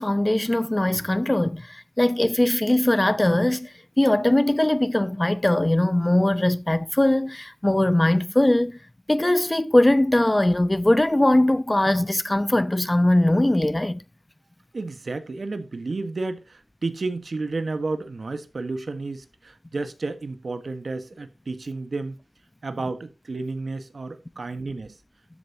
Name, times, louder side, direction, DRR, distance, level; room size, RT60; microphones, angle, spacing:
voice 1, 0.0-8.8 9.1-14.0, left 1 dB, 20° left, 0.8 m, -21 dB
voice 2, 14.7-22.2 22.6-25.0, right 3 dB, 65° right, 1.3 m, -31 dB
13.0 x 8.0 x 2.8 m
wide cardioid pair, 70°, 0 cm